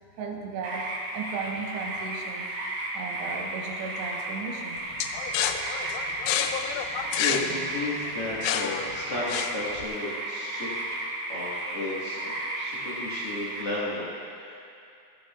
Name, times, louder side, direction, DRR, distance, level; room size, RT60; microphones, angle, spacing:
voice 1, 0.2-2.5 2.9-4.8 5.4-5.8, right 4 dB, 90° right, 0 dB, 3.3 m, -36 dB
sound 1, 0.6-13.6, right 1 dB, 55° right, 2.1 m, -34 dB
sound 2, 5.0-9.8, left 9 dB, 85° left, 2.6 m, -29 dB
voice 2, 6.6-11.0 11.3-12.2 12.5-14.6, left 2 dB, 50° left, -8 dB, 1.8 m, -34 dB
16.0 x 13.5 x 2.4 m, 2.5 s
omnidirectional pair, 5.0 m